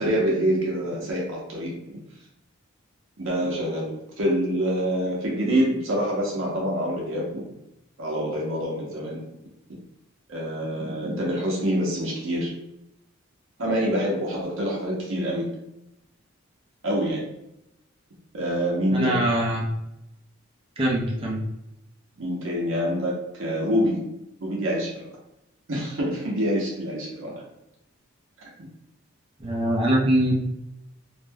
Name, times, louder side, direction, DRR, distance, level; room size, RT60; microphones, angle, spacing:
voice 1, 0.0-1.7 3.2-7.4 8.0-9.2 9.7-9.8 10.3-12.5 13.6-15.5 16.8-17.2 18.3-19.1 22.2-24.0 24.4-24.9 25.7-27.3 28.4-28.5, equal, 70° right, -3 dB, 0.7 m, -26 dB
voice 2, 18.9-19.7 20.8-21.4 29.4-30.3, right 1 dB, 30° right, -3 dB, 0.6 m, -22 dB
2.5 x 2.1 x 3.3 m, 0.85 s
head